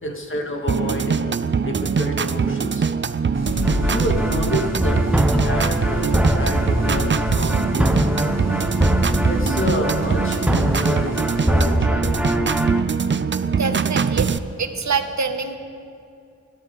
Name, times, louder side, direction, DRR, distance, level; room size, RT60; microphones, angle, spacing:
voice 1, 0.0-2.9 3.8-5.1 5.4-8.1 9.2-12.3, left 1 dB, 40° left, 2 dB, 2.0 m, -29 dB
sound 1, 0.7-14.4, right 6 dB, 40° right, 0.5 m, -23 dB
sound 2, 3.3-11.7, left 1 dB, 60° left, 2.0 m, -30 dB
sound 3, 3.6-12.8, equal, 5° right, 0.8 m, -23 dB
voice 2, 13.6-15.6, right 5 dB, 70° right, 7 dB, 1.1 m, -26 dB
25.5 x 12.5 x 3.9 m, 2.6 s
wide cardioid pair, 100°, 30 cm